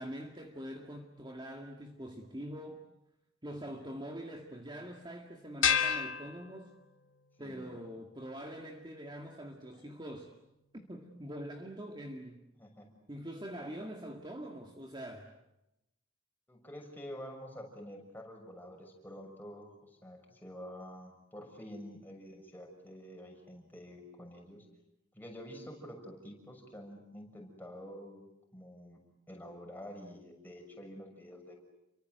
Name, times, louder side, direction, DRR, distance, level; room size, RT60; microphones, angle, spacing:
voice 1, 0.0-2.8 3.4-6.7 7.4-10.3 10.7-12.5 13.1-15.3, equal, 25° right, 2 dB, 2.1 m, -44 dB
sound 1, 5.6-7.1, left 7 dB, 80° left, 2.3 m, -31 dB
voice 2, 7.4-7.8 12.6-12.9 16.5-24.6 25.1-28.2 28.5-29.0 29.3-31.6, equal, 10° left, 1 dB, 6.5 m, -48 dB
30.0 x 24.0 x 8.0 m, 0.90 s
head